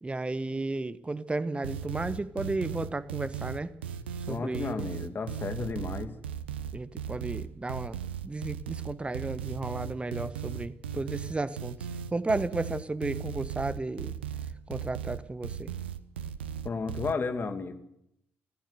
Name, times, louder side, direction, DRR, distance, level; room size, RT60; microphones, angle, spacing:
voice 1, 0.0-3.7 4.3-4.9 6.7-11.8 12.1-14.1 14.7-15.7, right 2 dB, 20° right, 15 dB, 1.2 m, -33 dB
sound 1, 1.6-17.1, right 8 dB, 80° right, 0.8 m, -37 dB
voice 2, 4.3-6.1 16.6-17.7, left 4 dB, 35° left, 8 dB, 2.5 m, -33 dB
25.0 x 14.5 x 8.0 m, 0.80 s
figure-of-eight pair, 40°, 6 cm